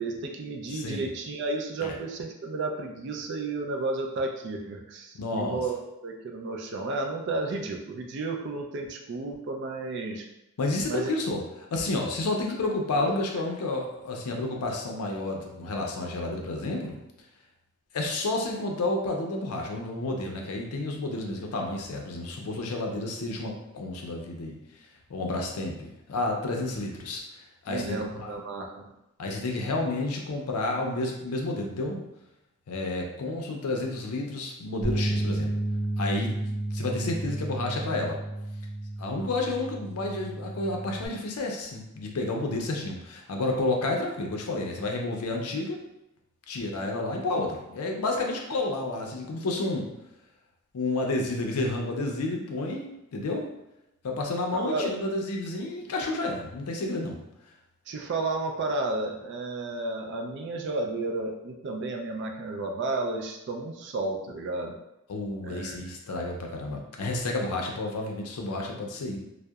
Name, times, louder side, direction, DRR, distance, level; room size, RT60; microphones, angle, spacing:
voice 1, 0.0-5.8 6.0-10.2 10.9-11.1 13.0-13.1 27.7-28.9 36.9-37.1 54.5-54.9 57.9-64.7 65.4-65.8, right 3 dB, 50° right, 2 dB, 0.3 m, -32 dB
voice 2, 0.7-1.1 1.8-2.0 5.1-5.6 10.6-11.4 11.7-17.0 17.9-24.5 25.1-27.2 27.6-28.4 29.2-32.0 32.7-35.5 36.0-36.4 36.7-38.2 39.0-45.8 46.5-49.9 50.7-53.5 54.0-57.2 65.1-69.2, left 2 dB, 85° left, 1 dB, 0.5 m, -30 dB
sound 1, 34.8-41.1, right 1 dB, 10° left, 0.4 m, -32 dB
2.7 x 2.0 x 2.3 m, 0.90 s
head